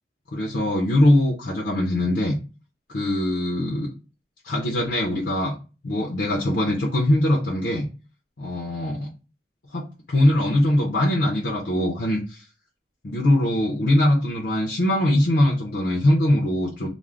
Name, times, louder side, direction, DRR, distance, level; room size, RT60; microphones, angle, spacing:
voice 1, 0.3-2.4 2.9-3.9 4.4-5.5 5.8-7.9 8.4-9.1 9.7-12.4 13.0-16.9, left 1 dB, 65° left, -1 dB, 0.6 m, -22 dB
2.4 x 2.1 x 3.2 m, 0.32 s
head